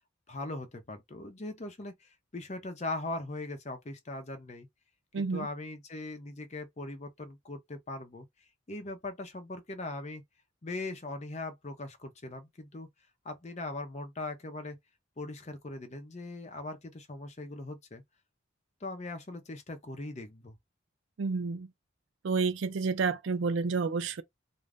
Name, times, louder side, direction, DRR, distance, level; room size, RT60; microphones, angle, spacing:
voice 1, 0.3-4.7 5.1-8.3 8.7-10.2 10.6-12.9 13.2-14.8 15.2-18.0 18.8-20.6, left 2 dB, 35° left, 0.6 m, -40 dB
voice 2, 5.1-5.5 21.2-21.7 22.2-24.2, right 4 dB, 65° right, 0.4 m, -30 dB
2.4 x 2.1 x 3.3 m
head